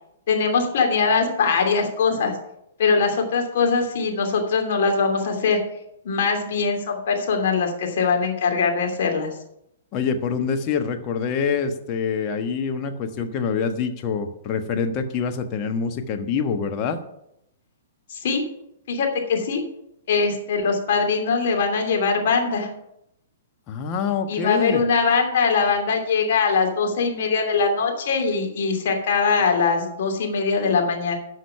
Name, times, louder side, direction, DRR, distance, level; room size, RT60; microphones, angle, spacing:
voice 1, 0.3-2.4 2.8-5.6 6.0-9.3 18.1-18.4 18.9-19.6 20.1-22.7 24.3-31.2, left 5 dB, 55° left, 2 dB, 2.7 m, -22 dB
voice 2, 9.9-17.0 23.7-24.8, left 6 dB, 35° left, 6 dB, 1.4 m, -25 dB
11.5 x 6.5 x 5.7 m, 0.78 s
figure-of-eight pair, 115°, 0 cm